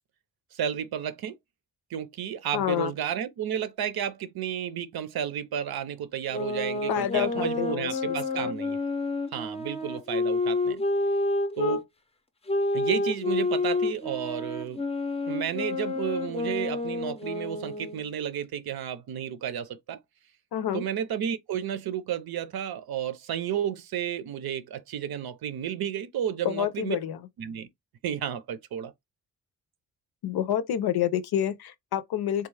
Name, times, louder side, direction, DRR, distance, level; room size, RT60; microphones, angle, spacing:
voice 1, 0.5-1.3 1.9-8.8 9.3-10.8 11.6-11.8 12.7-14.8 15.3-20.0 20.7-27.0 27.4-27.7 28.0-28.9, right 9 dB, 80° right, 0.7 m, -32 dB
voice 2, 2.5-2.9 6.9-8.5 20.5-20.9 26.4-27.2 30.2-32.5, left 10 dB, 85° left, 0.6 m, -28 dB
sound 1, 6.3-11.8 12.5-18.0, left 2 dB, 15° left, 0.5 m, -29 dB
3.6 x 2.3 x 3.2 m
wide cardioid pair, 130°, 37 cm